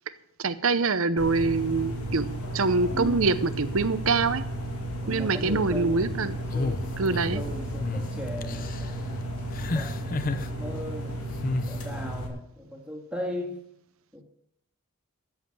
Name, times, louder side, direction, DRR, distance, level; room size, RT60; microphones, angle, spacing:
voice 1, 0.4-2.3 2.5-4.4 5.1-6.4 7.0-7.4, right 4 dB, 70° right, 13 dB, 0.8 m, -25 dB
sound 1, 1.2-12.3, right 1 dB, 80° left, 2.5 m, -33 dB
voice 2, 2.9-3.3 5.0-9.3 9.7-11.2 11.5-13.6 14.1-14.2, equal, 5° right, 0 dB, 1.9 m, -38 dB
sound 2, 6.5-7.4 7.8-8.1 8.4-8.9 9.5-10.5 11.4-11.8, left 2 dB, 40° left, 0.7 m, -30 dB
14.0 x 7.4 x 7.4 m, 0.76 s
head